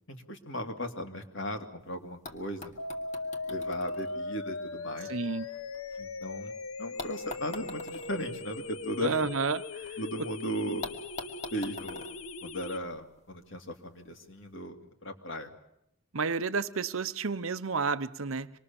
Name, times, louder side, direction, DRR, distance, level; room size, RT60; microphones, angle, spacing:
voice 1, 0.1-2.7 3.5-5.2 6.0-6.5 6.8-9.3 10.0-10.9 11.5-12.1 12.4-15.5, equal, 55° left, 2.5 m, -37 dB
sound 1, 1.8-1.9 2.2-6.3 7.0-9.9 10.2-10.3 10.8-13.2 14.2-14.3, left 2 dB, 30° left, 2.2 m, -45 dB
sound 2, 2.8-12.8, left 3 dB, 70° left, 1.0 m, -39 dB
voice 2, 5.1-5.4 9.0-9.6 16.1-18.5, right 4 dB, 70° right, 0.9 m, -30 dB
26.0 x 21.5 x 7.1 m
head